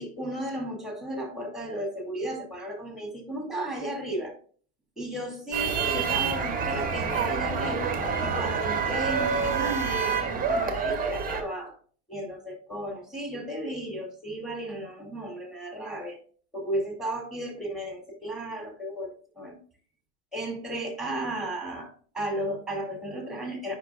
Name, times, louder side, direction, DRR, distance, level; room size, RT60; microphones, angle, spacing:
voice 1, 0.0-4.4 5.0-11.8 12.1-16.2 16.5-19.6 20.3-23.8, right 1 dB, ahead, 2 dB, 2.4 m, -34 dB
sound 1, 5.5-11.4, right 5 dB, 20° right, 1.2 m, -27 dB
9.5 x 5.3 x 2.4 m, 0.43 s
supercardioid pair, 120°, 47 cm